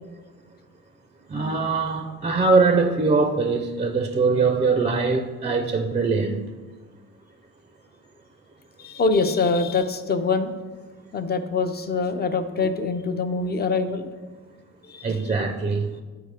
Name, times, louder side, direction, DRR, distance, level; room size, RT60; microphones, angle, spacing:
voice 1, 1.3-6.5 15.0-16.0, right 4 dB, 20° right, 6 dB, 0.4 m, -22 dB
voice 2, 8.8-10.5 11.1-14.1 14.8-15.2, left 4 dB, 35° left, 8 dB, 0.5 m, -24 dB
7.8 x 4.6 x 3.3 m, 1.4 s
cardioid pair, 90°, 30 cm